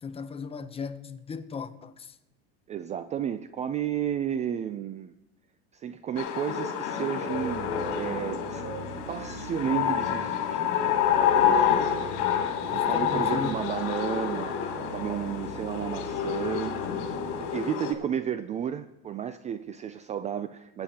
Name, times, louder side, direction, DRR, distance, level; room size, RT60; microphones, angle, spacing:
voice 1, 0.0-2.2 12.1-12.2 12.6-13.6, left 6 dB, 20° left, 0.6 m, -37 dB
voice 2, 2.7-5.1 5.7-8.6 9.1-10.9 11.3-11.9 12.7-16.8 17.4-20.8, right 9 dB, 25° right, 0.3 m, -32 dB
sound 1, 6.2-17.9, left 8 dB, 65° left, 2.6 m, -28 dB
sound 2, 7.2-17.6, right 1 dB, 85° right, 4.7 m, -42 dB
21.5 x 9.0 x 2.9 m
supercardioid pair, 135°, 30 cm